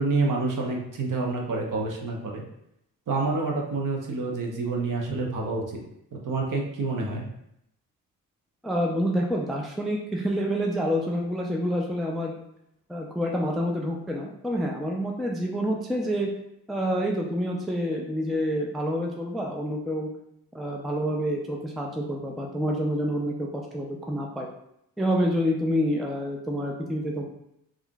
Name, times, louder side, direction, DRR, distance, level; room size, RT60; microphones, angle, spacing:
voice 1, 0.0-2.4 3.1-5.6 6.1-7.3, right 3 dB, 45° right, 0 dB, 0.9 m, -28 dB
voice 2, 8.6-12.4 12.9-16.3 16.7-20.1 20.5-24.5 25.0-27.2, equal, ahead, 0 dB, 0.4 m, -28 dB
3.5 x 2.5 x 2.2 m, 0.77 s
hypercardioid pair, 40°, 45 cm